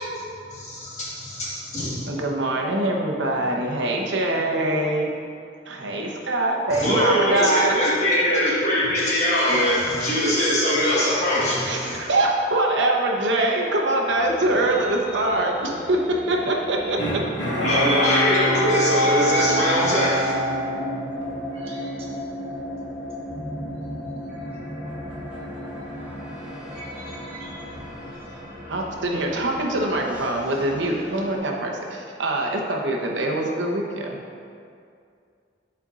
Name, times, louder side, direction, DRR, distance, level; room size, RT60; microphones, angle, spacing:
voice 1, 0.5-2.0 6.7-12.0 17.6-20.3, equal, 40° left, -8 dB, 1.4 m, -22 dB
voice 2, 2.1-5.1 5.7-7.8 11.6-17.2 28.7-34.2, right 1 dB, 75° right, 0 dB, 0.9 m, -23 dB
sound 1, 14.1-31.4, left 1 dB, 5° right, 1.2 m, -36 dB
Bowed string instrument, 17.0-21.5 21.9-22.0, right 1 dB, 85° left, 1.4 m, -25 dB
voice 3, 21.5-22.1 25.7-28.4, right 1 dB, 30° right, -7 dB, 1.5 m, -45 dB
12.0 x 4.4 x 2.5 m, 2.4 s
head